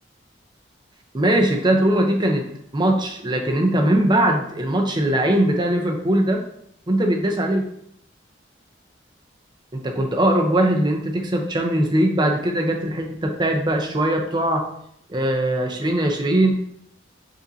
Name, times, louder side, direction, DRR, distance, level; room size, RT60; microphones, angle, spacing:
voice 1, 1.1-2.4 2.7-6.4 6.9-7.7 9.7-14.6 15.1-16.5, right 1 dB, 25° right, 2 dB, 0.6 m, -20 dB
5.1 x 2.6 x 4.0 m, 0.72 s
head